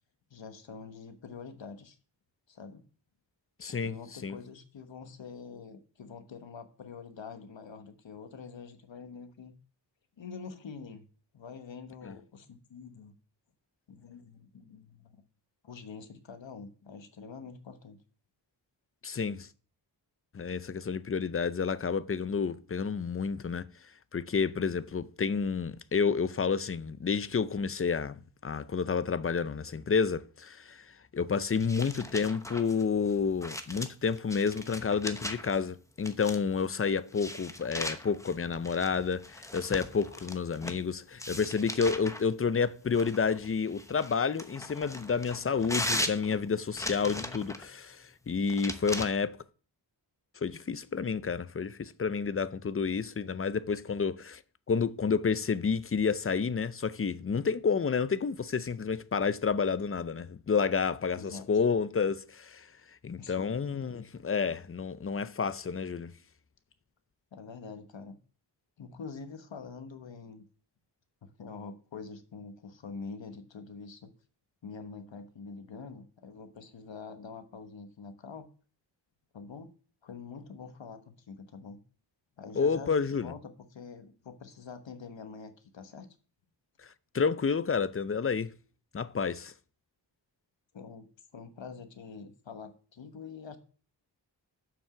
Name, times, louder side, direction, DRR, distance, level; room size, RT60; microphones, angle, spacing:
voice 1, 0.3-2.0 2.5-2.9 3.7-9.5 10.2-11.1 11.3-13.1 13.9-15.2 15.6-18.0 47.2-47.4 61.1-61.5 63.2-63.6 67.3-68.2 68.8-70.5 71.2-74.1 74.6-78.5 79.3-79.7 80.0-81.0 81.3-81.8 82.4-86.1 90.7-91.1 91.3-93.6, left 5 dB, 75° left, 1.2 m, -45 dB
voice 2, 3.6-3.9 4.2-4.4 12.0-12.1 19.0-19.5 20.3-23.7 24.1-30.8 31.1-49.4 50.4-54.4 54.7-62.7 63.0-66.1 82.6-83.3 87.1-88.5 88.9-89.5, left 5 dB, 30° left, 0.5 m, -30 dB
sound 1, 31.5-35.6 36.0-36.6 37.1-40.8 41.2-42.2 42.9-47.7 48.5-49.1, left 1 dB, 5° left, 0.9 m, -38 dB
7.3 x 6.0 x 6.0 m
wide cardioid pair, 90°, 45 cm